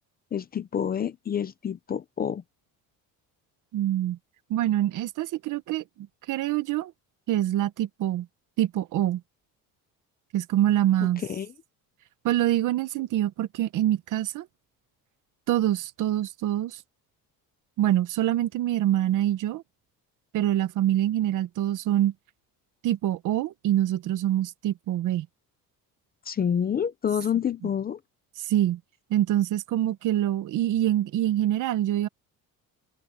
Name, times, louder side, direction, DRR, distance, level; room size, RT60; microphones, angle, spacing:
voice 1, 0.3-2.4 11.2-11.5 26.3-28.0, left 8 dB, 25° left, 0.6 m, -28 dB
voice 2, 3.7-4.2 4.5-5.8 6.3-6.9 7.3-8.3 8.6-9.2 10.3-11.2 12.2-14.5 15.5-16.8 17.8-19.6 20.3-22.1 22.8-25.3 28.4-28.8 29.1-32.1, right 13 dB, 55° right, 1.1 m, -25 dB
cardioid pair, 175°, 37 cm